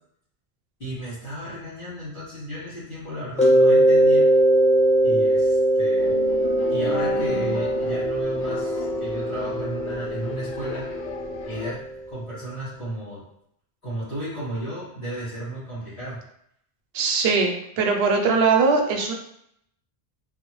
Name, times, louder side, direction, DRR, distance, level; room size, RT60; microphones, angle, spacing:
voice 1, 0.8-4.3 5.0-6.2 6.7-10.9 11.5-13.2 13.8-16.2, right 1 dB, 55° left, -13 dB, 1.9 m, -34 dB
Mallet percussion, 3.4-12.0, right 1 dB, 10° left, 0.3 m, -21 dB
sound 1, 6.0-11.7, left 6 dB, 85° left, 0.8 m, -33 dB
voice 2, 16.9-19.1, right 4 dB, 75° right, 2 dB, 0.9 m, -21 dB
3.5 x 2.2 x 3.0 m, 0.72 s
omnidirectional pair, 1.1 m